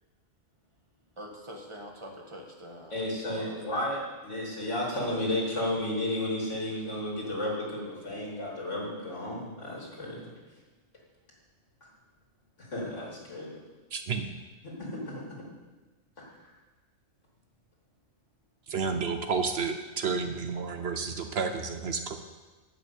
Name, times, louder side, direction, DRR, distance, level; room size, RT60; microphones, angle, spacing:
voice 1, 1.2-3.6, equal, 25° right, 0 dB, 1.7 m, -44 dB
voice 2, 2.9-10.3 12.7-13.5 14.6-15.2 16.2-16.3, left 1 dB, 75° left, -3 dB, 3.5 m, -33 dB
voice 3, 13.9-14.3 18.7-22.2, right 5 dB, 60° right, 7 dB, 1.0 m, -31 dB
11.0 x 5.9 x 8.4 m, 1.2 s
omnidirectional pair, 1.2 m